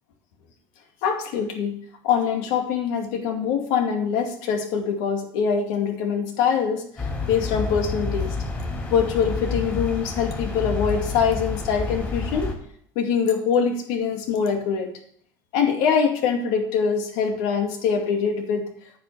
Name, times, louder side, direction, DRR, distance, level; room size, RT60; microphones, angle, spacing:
voice 1, 1.0-1.8 2.0-8.3 8.9-12.5 13.0-14.9 15.5-18.6, left 6 dB, 80° left, 3 dB, 2.3 m, -23 dB
sound 1, 7.0-12.5, left 3 dB, 20° left, 2.9 m, -29 dB
9.6 x 5.9 x 7.3 m, 0.65 s
cardioid pair, 130°, 10 cm